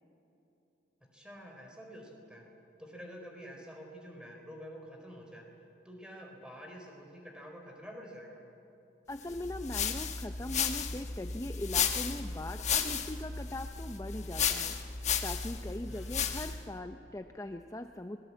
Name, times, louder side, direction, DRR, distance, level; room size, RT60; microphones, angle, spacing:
voice 1, 1.1-2.4 2.8-5.4 5.8-8.4 15.9-16.2, equal, 5° right, 1 dB, 4.2 m, -48 dB
voice 2, 9.1-14.8 15.2-18.2, left 1 dB, 15° left, 7 dB, 0.6 m, -40 dB
sound 1, 9.3-16.7, left 7 dB, 40° left, 1.4 m, -34 dB
25.0 x 19.0 x 8.5 m, 2.8 s
head